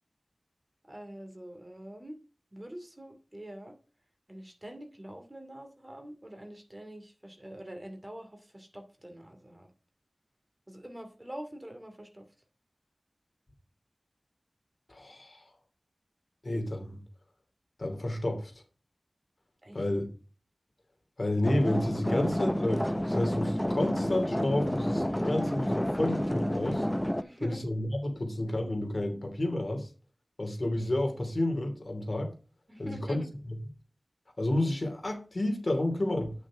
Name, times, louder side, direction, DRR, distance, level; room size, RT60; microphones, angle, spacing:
voice 1, 0.9-2.2 2.5-3.8 4.3-9.7 10.7-12.2 19.6-19.8 27.2-27.6 32.7-33.3, right 1 dB, 25° right, 4 dB, 2.5 m, -45 dB
voice 2, 14.9-15.5 16.4-17.0 17.8-18.5 19.7-20.1 21.2-26.9 27.4-29.9 30.4-32.3 32.8-33.2 34.4-36.3, left 1 dB, 50° left, 4 dB, 2.8 m, -30 dB
sound 1, 21.4-27.2, equal, 10° left, 0.6 m, -30 dB
9.1 x 6.3 x 4.9 m, 0.35 s
wide cardioid pair, 60°, 0 cm